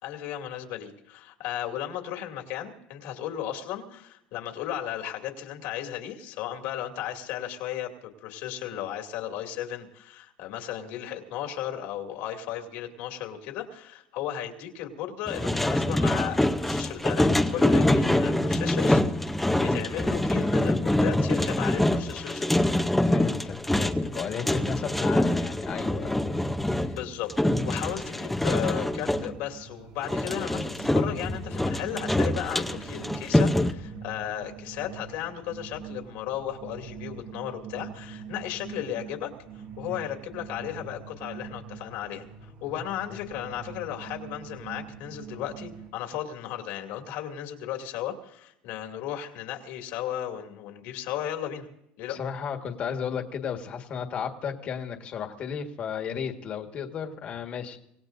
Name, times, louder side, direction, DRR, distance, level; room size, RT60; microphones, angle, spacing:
voice 1, 0.0-7.9 8.2-22.6 26.9-27.4 27.6-39.3 39.8-42.2 42.6-51.7 52.0-52.2, left 11 dB, 70° left, 3 dB, 2.6 m, -35 dB
sound 1, 15.3-29.3 30.0-33.7, left 1 dB, 5° left, 0.7 m, -25 dB
voice 2, 23.0-26.5 26.8-27.0 39.9-40.0 43.1-43.2 52.1-57.8, left 7 dB, 40° left, 5 dB, 1.6 m, -34 dB
sound 2, 28.9-45.9, right 6 dB, 60° right, 3.2 m, -43 dB
26.0 x 18.0 x 2.6 m, 0.78 s
cardioid pair, 155°, 3 cm